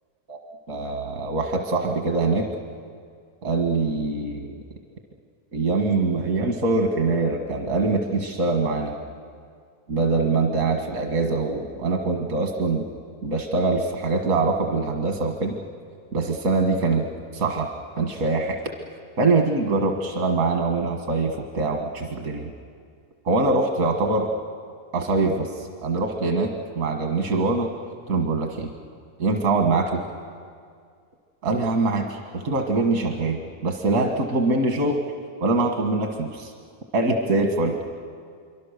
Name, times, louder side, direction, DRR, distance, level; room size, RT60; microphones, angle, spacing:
voice 1, 0.7-2.5 3.4-4.6 5.5-8.9 9.9-12.9 13.2-15.6 16.1-17.1 17.3-17.7 18.0-18.6 19.2-22.5 23.3-24.3 24.9-27.7 28.1-28.7 29.2-30.0 31.4-35.0 35.4-36.5 36.9-37.8, right 3 dB, 75° right, 3 dB, 2.0 m, -23 dB
26.0 x 24.5 x 6.6 m, 2.2 s
omnidirectional pair, 1.5 m